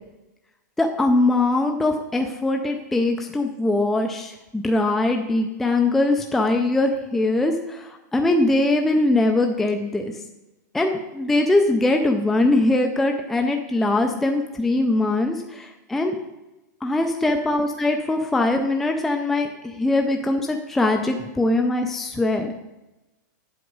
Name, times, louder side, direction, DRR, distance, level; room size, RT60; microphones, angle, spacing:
voice 1, 0.8-10.1 10.7-16.2 16.8-22.5, left 2 dB, ahead, 3 dB, 0.3 m, -22 dB
9.3 x 7.8 x 5.2 m, 1.0 s
supercardioid pair, 175°, 10 cm